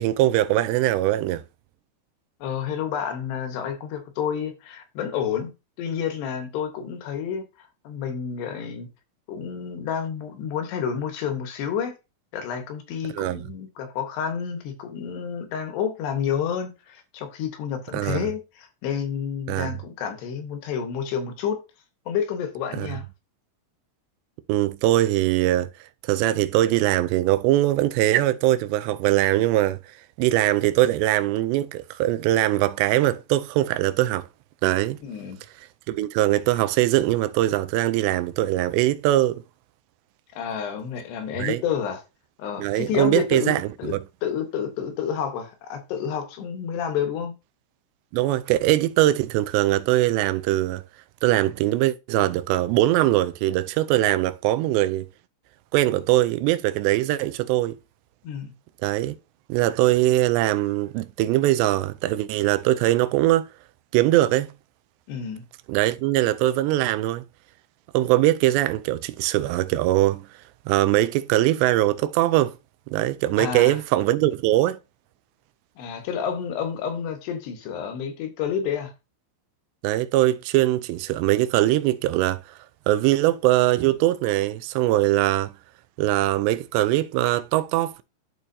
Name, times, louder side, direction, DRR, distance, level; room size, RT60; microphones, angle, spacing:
voice 1, 0.0-1.4 13.1-13.5 17.9-18.3 19.5-19.8 22.8-22.9 24.5-25.7 26.0-29.8 30.2-34.3 34.6-35.0 35.9-39.4 41.4-41.6 42.6-44.0 48.1-50.8 51.2-55.1 55.7-57.8 58.8-59.2 59.5-63.5 63.9-64.5 65.7-67.3 67.9-70.3 70.7-72.6 72.9-74.8 79.8-82.4 82.9-85.5 86.0-88.0, right 15 dB, 85° right, 2.8 m, -21 dB
voice 2, 2.4-5.5 5.8-7.4 7.8-8.9 9.3-11.9 12.3-21.6 22.1-23.0 35.0-35.4 40.3-42.0 42.4-43.9 44.2-47.3 58.2-58.5 65.1-65.4 73.4-73.8 75.8-78.9, left 7 dB, 75° left, 3.3 m, -29 dB
12.5 x 4.4 x 2.7 m
omnidirectional pair, 4.9 m